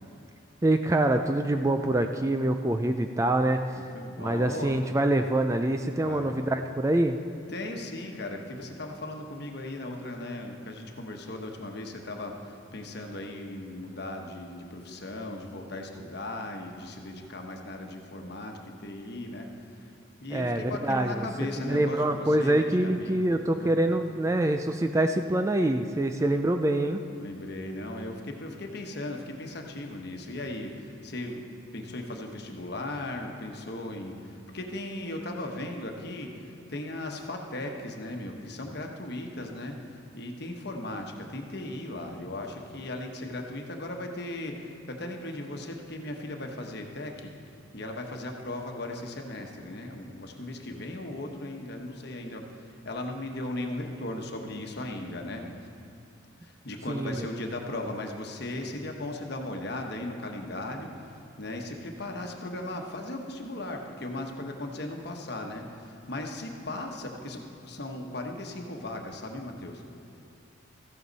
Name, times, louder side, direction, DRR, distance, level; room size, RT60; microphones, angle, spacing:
voice 1, 0.6-3.8 4.2-7.2 20.3-21.2 21.6-27.0 56.9-57.3, right 1 dB, 15° right, 6 dB, 0.3 m, -25 dB
voice 2, 3.7-4.8 6.0-6.3 7.5-23.3 23.5-23.7 27.2-31.5 31.7-55.7 56.4-69.8, left 1 dB, 55° left, 2 dB, 1.1 m, -37 dB
14.5 x 11.5 x 4.1 m, 2.6 s
head